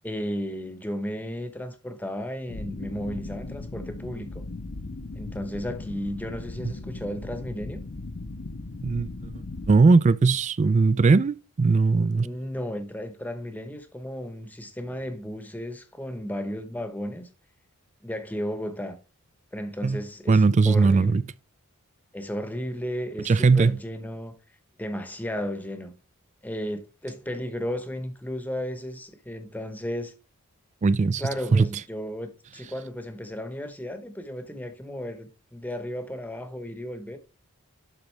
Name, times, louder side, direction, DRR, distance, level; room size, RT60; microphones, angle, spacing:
voice 1, 0.0-4.4 5.2-7.8 12.2-17.3 18.0-19.0 19.5-21.2 22.1-24.3 24.8-25.9 26.4-30.1 31.2-37.2, equal, 5° left, 0.9 m, -34 dB
sound 1, 2.5-9.7, left 2 dB, 50° left, 0.6 m, -37 dB
voice 2, 9.7-12.3 19.8-20.0 20.3-21.2 23.3-23.7 30.8-31.2 31.5-31.6, right 4 dB, 35° right, 0.3 m, -19 dB
11.5 x 3.9 x 3.2 m
head